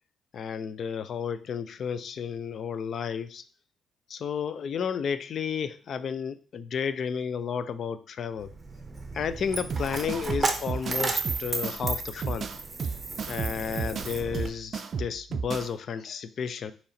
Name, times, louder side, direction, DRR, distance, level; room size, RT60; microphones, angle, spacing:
voice 1, 0.3-3.4 4.1-8.5 9.1-12.5 13.3-16.7, left 7 dB, 60° left, 13 dB, 0.3 m, -32 dB
Coin (dropping), 8.4-14.5, right 3 dB, 25° right, 0.7 m, -33 dB
sound 1, 9.7-15.7, right 5 dB, 50° right, 0.3 m, -33 dB
4.1 x 2.9 x 3.9 m, 0.41 s
cardioid pair, 90°, 0 cm